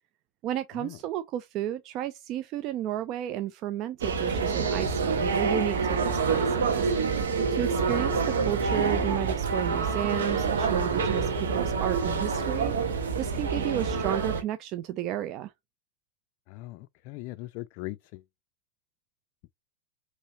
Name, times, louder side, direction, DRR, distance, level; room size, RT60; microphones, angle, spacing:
voice 1, 0.4-6.9 7.5-15.5, right 12 dB, 45° right, 0.5 m, -32 dB
sound 1, 4.0-14.4, right 5 dB, 80° right, 1.3 m, -27 dB
voice 2, 16.5-18.2, left 18 dB, 55° left, 0.3 m, -40 dB
5.4 x 3.1 x 2.8 m
hypercardioid pair, 95°, 0 cm